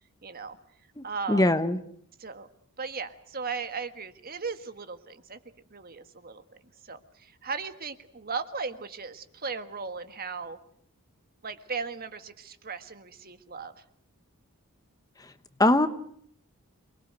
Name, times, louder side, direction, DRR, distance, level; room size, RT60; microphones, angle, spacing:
voice 1, 0.2-0.6 1.0-1.5 2.2-2.5 2.8-5.4 5.7-6.4 6.8-10.6 11.4-13.8, right 5 dB, 40° right, 9 dB, 1.6 m, -37 dB
voice 2, 1.0-1.8 15.6-15.9, left 1 dB, 15° left, 10 dB, 1.0 m, -22 dB
28.0 x 21.0 x 8.0 m, 0.65 s
head